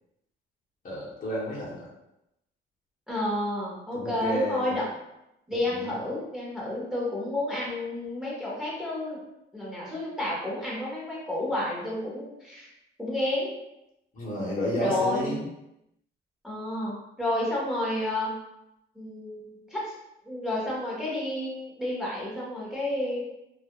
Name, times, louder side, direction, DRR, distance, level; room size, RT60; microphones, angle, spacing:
voice 1, 0.8-1.9 3.9-4.7 5.7-5.9 14.1-15.4, left 1 dB, 45° left, -6 dB, 0.9 m, -31 dB
voice 2, 3.1-4.8 5.5-9.2 9.5-12.7 13.0-13.5 14.7-15.3 16.4-18.3 18.9-20.0 20.2-23.2, left 1 dB, ahead, -6 dB, 1.0 m, -30 dB
2.3 x 2.0 x 2.9 m, 0.86 s
cardioid pair, 90°, 20 cm